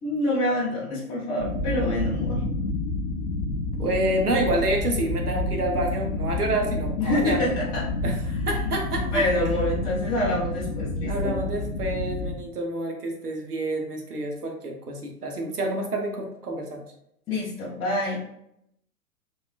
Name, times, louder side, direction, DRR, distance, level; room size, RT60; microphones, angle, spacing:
voice 1, 0.0-2.4 7.0-7.8 8.6-11.4 17.3-18.2, left 1 dB, 10° left, -7 dB, 0.4 m, -26 dB
sound 1, 1.4-12.4, left 2 dB, 50° left, 0.6 m, -29 dB
voice 2, 3.8-7.6 8.0-9.2 11.1-16.8, right 2 dB, 85° right, 2 dB, 0.7 m, -28 dB
3.5 x 2.3 x 2.3 m, 0.77 s
figure-of-eight pair, 100°, 44 cm